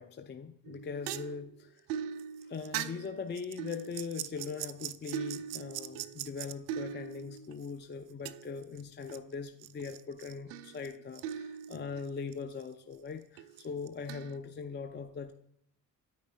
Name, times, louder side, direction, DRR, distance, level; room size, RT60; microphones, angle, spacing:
voice 1, 0.0-1.8 2.4-15.3, left 5 dB, 25° left, 7 dB, 0.6 m, -41 dB
sound 1, 0.7-7.7 8.3-9.2 9.5-12.3 12.6-12.7 13.4-14.4, right 9 dB, 70° right, 0.5 m, -40 dB
9.4 x 9.3 x 2.3 m, 0.68 s
figure-of-eight pair, 40°, 49 cm